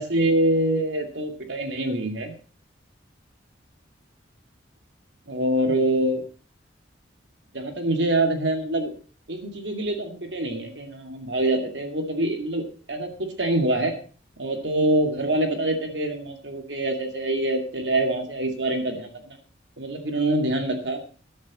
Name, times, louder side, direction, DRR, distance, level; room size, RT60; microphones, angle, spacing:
voice 1, 0.0-2.3 5.3-6.2 7.5-8.9 9.3-13.9 14.4-19.4 19.8-21.0, right 1 dB, 70° right, 4 dB, 2.4 m, -25 dB
13.5 x 10.5 x 4.3 m, 0.40 s
head